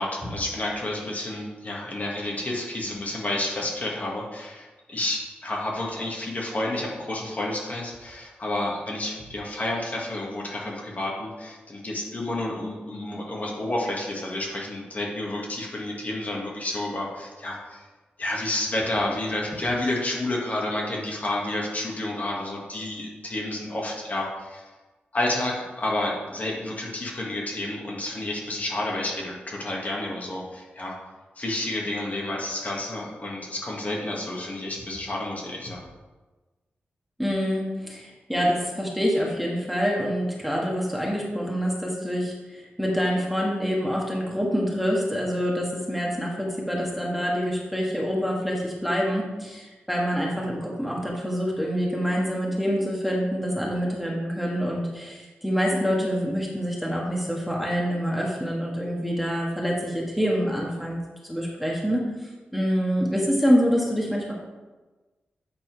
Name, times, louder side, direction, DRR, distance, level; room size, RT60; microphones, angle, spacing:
voice 1, 0.0-17.9 18.2-24.7 25.1-30.9 31.4-35.8, left 1 dB, 45° left, -2 dB, 1.9 m, -30 dB
voice 2, 37.2-61.0 61.2-62.0 62.5-64.3, equal, ahead, -3 dB, 1.7 m, -26 dB
8.7 x 4.3 x 4.6 m, 1.2 s
cardioid pair, 70°, 4 cm